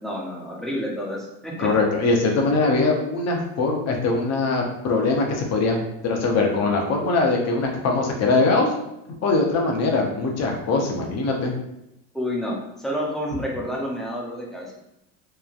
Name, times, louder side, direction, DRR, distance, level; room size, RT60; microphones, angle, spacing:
voice 1, 0.0-1.7 12.1-14.8, equal, ahead, -3 dB, 0.5 m, -29 dB
voice 2, 1.6-5.8 6.0-8.7 9.2-11.5, left 3 dB, 40° left, 1 dB, 0.7 m, -22 dB
3.1 x 2.2 x 2.4 m, 0.85 s
supercardioid pair, 110°, 40 cm